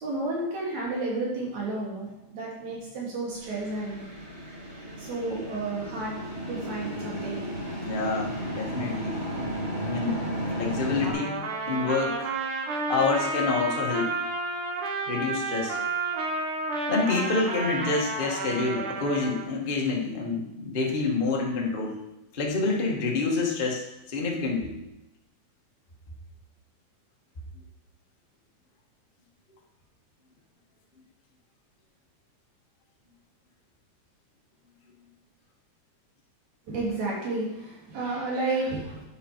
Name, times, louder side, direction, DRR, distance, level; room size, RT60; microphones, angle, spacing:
voice 1, 0.0-4.0 5.0-6.1 6.5-7.4 12.7-12.8 36.7-39.0, right 2 dB, 65° right, -4 dB, 4.4 m, -31 dB
sound 1, 3.3-11.1, equal, 40° right, 3.3 m, -34 dB
voice 2, 7.8-9.2 9.8-10.2 10.5-12.3 12.9-14.1 15.1-15.8 16.9-22.0 22.3-24.8, left 3 dB, 70° left, -1 dB, 0.5 m, -27 dB
Trumpet, 11.0-19.4, right 3 dB, 80° right, 2.7 m, -31 dB
9.8 x 9.2 x 4.5 m, 0.91 s
omnidirectional pair, 3.5 m